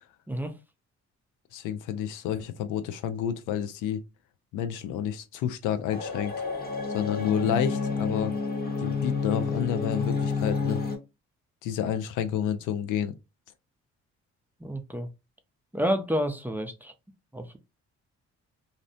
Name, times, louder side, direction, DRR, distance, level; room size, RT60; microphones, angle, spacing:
voice 1, 1.5-4.0 4.5-6.5 6.9-8.3 8.8-10.8 11.6-13.1, left 9 dB, 85° left, 0.5 m, -30 dB
sound 1, 5.9-11.0, left 4 dB, 30° left, 0.9 m, -29 dB
voice 2, 14.6-15.1 15.7-16.9 17.3-17.6, equal, 5° right, 0.4 m, -29 dB
2.6 x 2.0 x 2.6 m
cardioid pair, 90°, 30 cm